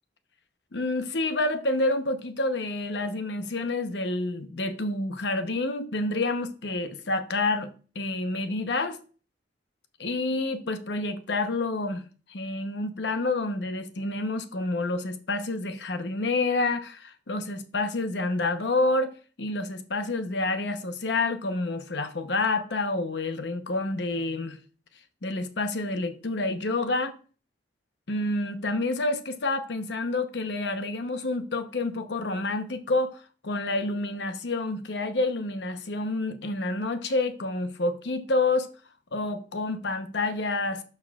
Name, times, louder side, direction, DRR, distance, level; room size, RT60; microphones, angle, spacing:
voice 1, 0.7-7.7 7.9-9.0 10.0-12.0 12.3-19.1 19.4-24.6 25.2-27.1 28.1-38.7 39.1-40.8, left 2 dB, 75° left, 0.8 m, -28 dB
12.5 x 4.6 x 2.3 m
head